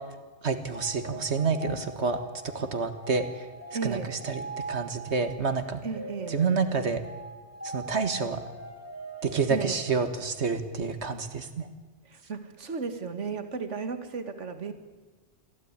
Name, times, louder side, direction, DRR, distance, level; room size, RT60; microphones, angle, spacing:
voice 1, 0.4-2.2 2.5-3.5 3.8-4.4 4.7-5.8 6.3-7.0 7.6-8.4 9.2-11.7, right 5 dB, 70° right, 9 dB, 2.0 m, -28 dB
sound 1, 0.7-10.5, right 3 dB, 10° left, 3.4 m, -42 dB
voice 2, 3.7-4.2 5.8-6.4 9.5-9.8 12.0-14.7, right 5 dB, 85° right, 9 dB, 2.0 m, -34 dB
23.5 x 15.5 x 9.7 m, 1.3 s
omnidirectional pair, 1.2 m